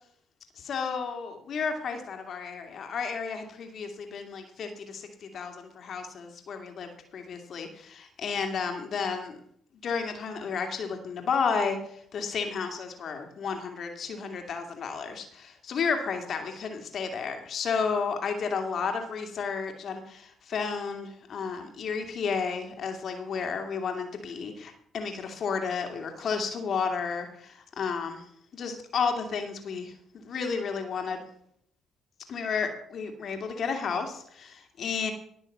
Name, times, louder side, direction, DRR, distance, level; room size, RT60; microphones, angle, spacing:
voice 1, 0.6-9.4 9.8-11.8 12.1-28.2 28.5-31.2 32.3-35.1, left 5 dB, 60° left, 5 dB, 2.4 m, -32 dB
18.5 x 6.3 x 5.5 m, 0.68 s
hypercardioid pair, 50°, 0 cm